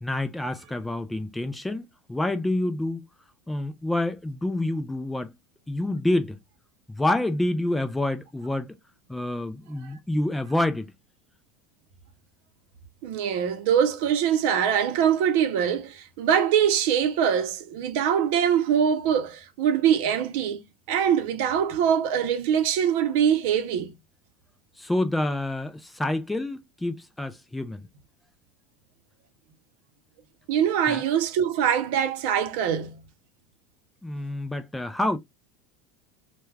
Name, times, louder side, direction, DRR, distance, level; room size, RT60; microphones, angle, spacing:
voice 1, 0.0-3.0 3.5-5.3 5.7-6.4 6.9-8.7 9.1-10.9 24.8-27.8 30.9-31.0 34.0-35.2, left 1 dB, 5° left, 0.3 m, -27 dB
voice 2, 13.0-20.6 20.9-23.9 30.5-33.0, right 8 dB, 70° right, 0.6 m, -23 dB
2.3 x 2.2 x 3.0 m
supercardioid pair, 150°, 0 cm